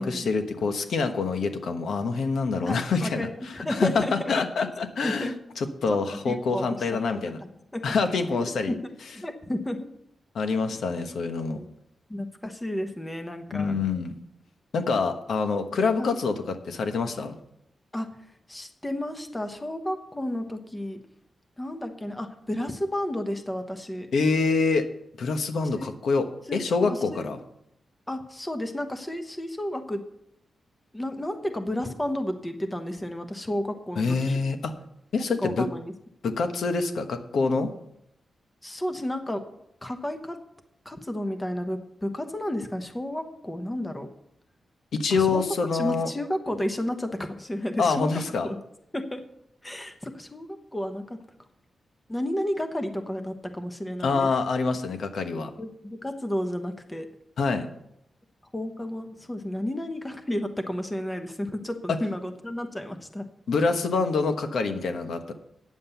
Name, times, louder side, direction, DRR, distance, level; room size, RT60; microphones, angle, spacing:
voice 1, 0.0-7.4 7.8-8.7 10.3-11.6 13.5-14.1 14.7-17.4 24.1-24.8 25.2-26.3 26.5-27.4 34.0-34.7 35.1-35.7 36.2-37.7 44.9-46.1 47.8-48.5 54.0-55.5 57.4-57.7 63.5-65.3, left 4 dB, 75° left, 7 dB, 1.2 m, -26 dB
voice 2, 2.6-4.3 5.0-5.3 5.9-6.0 6.2-6.8 7.1-7.8 8.7-8.8 9.1-9.9 11.6-11.7 12.1-13.7 16.0-16.1 17.9-18.1 18.5-21.0 21.6-24.1 25.8-25.9 26.5-27.2 28.1-30.0 30.9-34.4 35.2-35.9 38.6-39.4 39.8-40.4 40.8-44.1 45.2-45.4 45.7-48.6 48.9-49.2 49.6-51.2 52.1-54.3 55.6-57.1 58.5-63.3, left 1 dB, 15° left, 7 dB, 1.0 m, -32 dB
9.5 x 7.6 x 7.0 m, 0.76 s
wide cardioid pair, 135°, 0 cm